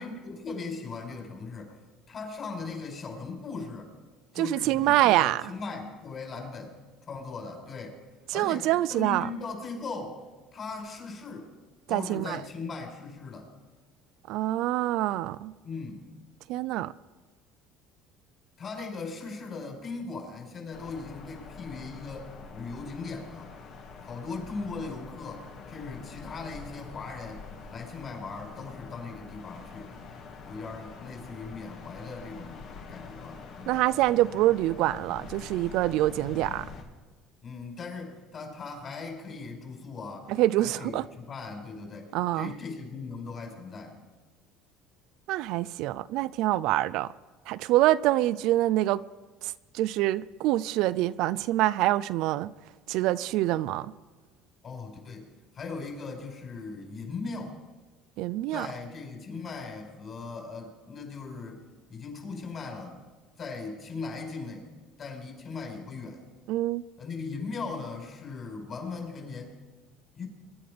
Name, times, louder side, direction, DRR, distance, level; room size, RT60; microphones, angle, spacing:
voice 1, 0.0-1.7 2.1-3.9 4.3-6.8 7.1-8.0 8.3-10.1 10.5-11.5 11.9-13.5 15.6-16.1 18.6-23.5 24.0-27.4 27.7-29.9 30.4-33.8 37.4-40.3 40.6-44.0 54.6-55.3 55.5-57.6 58.5-61.6 61.9-63.0 63.4-64.7 65.0-66.2 67.0-69.5 70.1-70.3, left 4 dB, 35° left, 4.9 m, -39 dB
voice 2, 4.4-5.4 8.3-9.3 11.9-12.4 14.3-15.5 16.5-16.9 33.7-36.6 40.3-41.0 42.1-42.5 45.3-47.1 47.5-49.0 49.4-52.5 52.9-53.9 58.2-58.7 66.5-66.8, right 15 dB, 70° right, 0.4 m, -25 dB
sound 1, 20.7-36.8, left 5 dB, 60° left, 2.6 m, -45 dB
23.0 x 11.0 x 5.2 m
cardioid pair, 125°, 0 cm